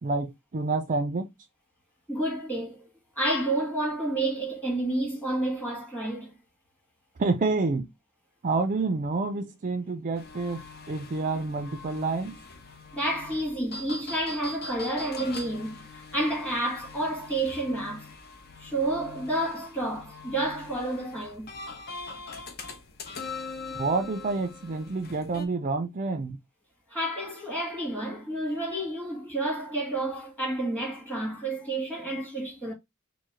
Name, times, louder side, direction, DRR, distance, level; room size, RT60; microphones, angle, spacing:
voice 1, 0.0-1.3 7.2-7.9 8.4-12.4 23.7-26.4, right 3 dB, 40° right, 0.4 m, -28 dB
voice 2, 2.1-2.9 3.2-6.3 12.9-18.1 18.6-21.5 26.9-32.7, right 1 dB, 5° left, 1.6 m, -30 dB
sound 1, 10.1-25.5, left 3 dB, 50° left, 0.8 m, -42 dB
4.6 x 2.1 x 4.4 m
head